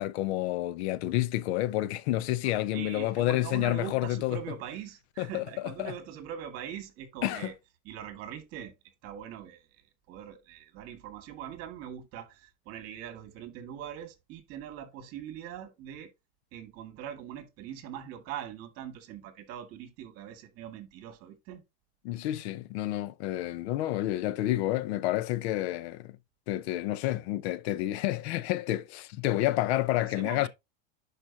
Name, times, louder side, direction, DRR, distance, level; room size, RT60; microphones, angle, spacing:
voice 1, 0.0-4.4 5.2-5.4 5.8-5.9 7.2-7.5 22.0-26.1 26.5-30.5, left 15 dB, 80° left, 0.7 m, -29 dB
voice 2, 2.4-7.5 7.8-16.1 16.5-21.6 30.0-30.5, right 10 dB, 45° right, 2.0 m, -42 dB
11.0 x 5.0 x 2.8 m
supercardioid pair, 150°, 32 cm